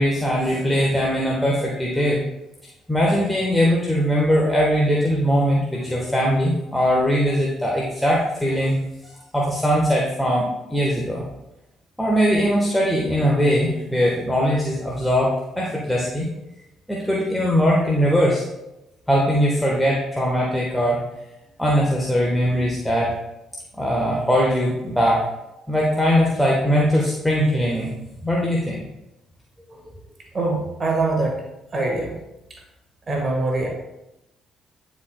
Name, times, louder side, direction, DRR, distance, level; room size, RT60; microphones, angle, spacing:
voice 1, 0.0-2.2 2.9-8.7 9.0-11.2 12.0-16.3 16.9-18.4 19.1-21.0 21.6-23.1 23.8-25.2 25.7-27.9 28.2-28.8, equal, 5° left, -4 dB, 1.3 m, -20 dB
voice 2, 30.3-31.4 31.7-32.2 33.1-33.7, right 2 dB, 35° right, 0 dB, 1.6 m, -23 dB
10.0 x 4.6 x 2.3 m, 0.92 s
hypercardioid pair, 45°, 0 cm